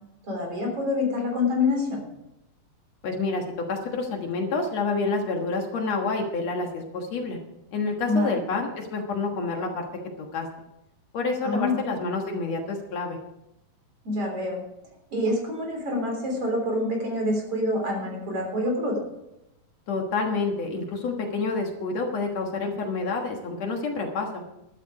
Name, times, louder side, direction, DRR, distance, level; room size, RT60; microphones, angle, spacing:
voice 1, 0.2-2.0 8.1-8.4 11.4-11.8 14.0-14.6 15.1-19.0, left 2 dB, 40° right, 1 dB, 4.3 m, -26 dB
voice 2, 3.0-7.4 7.7-9.9 10.2-10.5 11.1-13.2 19.9-24.4, left 3 dB, 55° left, 2 dB, 2.3 m, -28 dB
12.5 x 11.5 x 4.9 m, 0.89 s
omnidirectional pair, 4.0 m